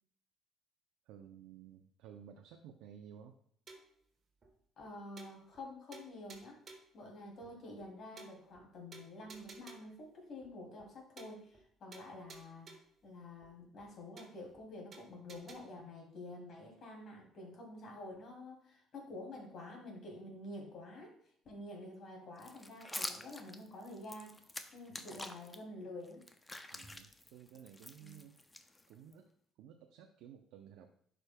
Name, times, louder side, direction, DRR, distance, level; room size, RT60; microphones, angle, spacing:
voice 1, 1.1-3.4 7.4-7.6 24.9-25.2 26.7-28.4 28.9-29.3 29.6-30.9, right 9 dB, 85° right, 5 dB, 0.5 m, -55 dB
sound 1, 3.7-4.0 4.4-4.5 4.8-4.9 5.2-5.7 5.9-7.0 7.4-7.5 7.8-7.9 8.2-8.6 8.9-10.0 10.4-10.5 10.8-10.9 11.2-11.7 11.9-13.0 13.4-13.5 13.8-13.9 14.2-14.6 14.9-15.6, right 3 dB, 40° right, 1.3 m, -55 dB
voice 2, 4.8-6.6 6.9-12.7 13.0-21.1 21.4-24.4 24.7-26.2 28.0-28.2, left 2 dB, 55° left, 0 dB, 2.6 m, -49 dB
sound 2, 22.4-25.6 26.0-29.1, left 2 dB, 15° left, 0.6 m, -47 dB
11.0 x 5.1 x 2.2 m, 0.64 s
cardioid pair, 100°, 0 cm